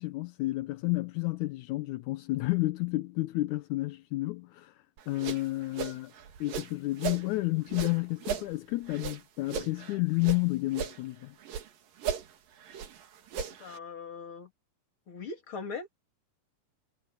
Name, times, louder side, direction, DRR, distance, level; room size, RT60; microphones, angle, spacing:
voice 1, 0.0-6.1 6.4-11.4, left 20 dB, 80° left, 1.9 m, -31 dB
sound 1, 5.0-7.3 7.7-10.4 10.7-11.7 12.0-13.8, right 7 dB, 90° right, 3.8 m, -37 dB
voice 2, 13.6-14.5 15.1-15.9, left 4 dB, 40° left, 3.7 m, -40 dB
omnidirectional pair, 3.8 m